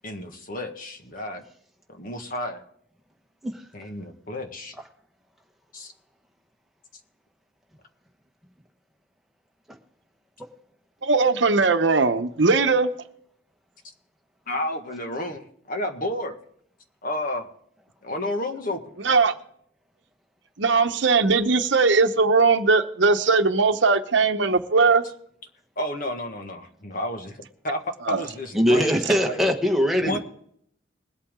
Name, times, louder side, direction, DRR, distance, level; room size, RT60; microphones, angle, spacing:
voice 1, 0.0-1.4 2.0-2.6 3.7-4.8 5.7-5.9 14.5-16.4 17.0-17.5 18.0-19.0 25.8-29.6 30.0-30.2, left 1 dB, 45° left, 1.6 m, -31 dB
voice 2, 11.0-12.9 19.0-19.3 20.6-25.0 28.1-28.2 30.1-30.2, right 4 dB, 70° right, 0.9 m, -19 dB
voice 3, 28.5-30.2, equal, ahead, 1.3 m, -21 dB
21.0 x 8.5 x 3.7 m
head